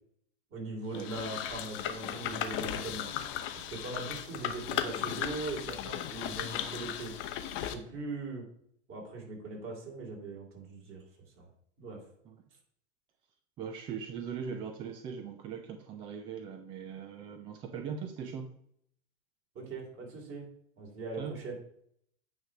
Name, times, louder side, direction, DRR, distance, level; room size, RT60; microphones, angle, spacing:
voice 1, 0.5-3.1 3.5-7.1 7.6-8.4 8.9-11.0 11.4-11.5 11.8-12.0 19.5-20.5 20.8-21.5, right 3 dB, 35° right, -1 dB, 3.3 m, -40 dB
sound 1, 0.9-7.7, left 10 dB, 35° left, 0.8 m, -36 dB
voice 2, 13.6-18.5 21.2-21.3, right 7 dB, 15° right, 6 dB, 0.3 m, -40 dB
9.3 x 3.3 x 6.0 m, 0.68 s
hypercardioid pair, 130°, 37 cm